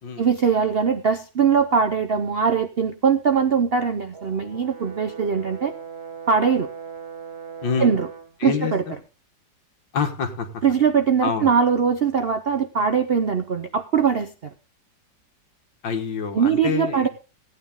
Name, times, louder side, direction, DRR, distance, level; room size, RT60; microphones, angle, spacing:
voice 1, 0.2-5.7 6.3-6.7 7.8-8.1 8.4-8.8 10.6-14.5 16.3-17.1, right 6 dB, 60° right, 7 dB, 0.6 m, -21 dB
Brass instrument, 4.1-8.4, right 6 dB, 40° right, 1.2 m, -39 dB
voice 2, 7.6-7.9 8.4-8.9 9.9-10.5 11.2-11.5 15.8-17.1, left 6 dB, 80° left, 6 dB, 2.2 m, -26 dB
16.5 x 9.3 x 3.7 m, 0.34 s
omnidirectional pair, 2.0 m